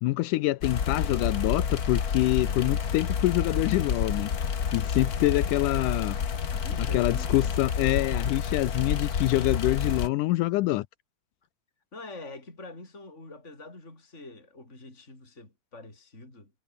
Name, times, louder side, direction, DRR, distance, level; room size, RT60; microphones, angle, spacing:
voice 1, 0.0-4.3 4.7-6.2 6.8-10.9, left 18 dB, 80° left, 2.2 m, -26 dB
sound 1, 0.6-10.1, left 7 dB, 45° left, 1.3 m, -29 dB
voice 2, 6.5-7.5 11.9-16.5, left 2 dB, 20° left, 6.3 m, -45 dB
omnidirectional pair, 3.7 m